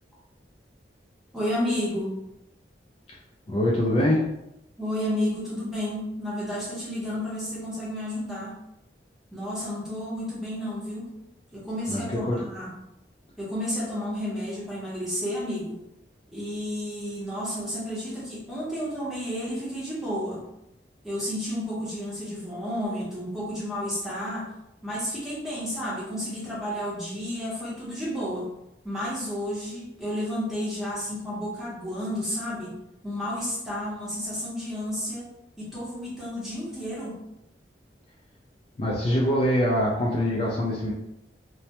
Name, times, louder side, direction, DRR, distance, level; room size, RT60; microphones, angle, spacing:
voice 1, 1.3-2.2 4.8-8.6 9.3-11.2 11.5-12.7 13.4-15.8 16.3-20.4 21.0-24.5 24.8-28.5 28.8-32.8 33.0-35.3 35.6-37.2, equal, ahead, -7 dB, 0.7 m, -31 dB
voice 2, 3.5-4.2 11.9-12.4 38.8-40.9, left 1 dB, 35° left, -4 dB, 0.3 m, -24 dB
2.2 x 2.1 x 2.7 m, 0.85 s
head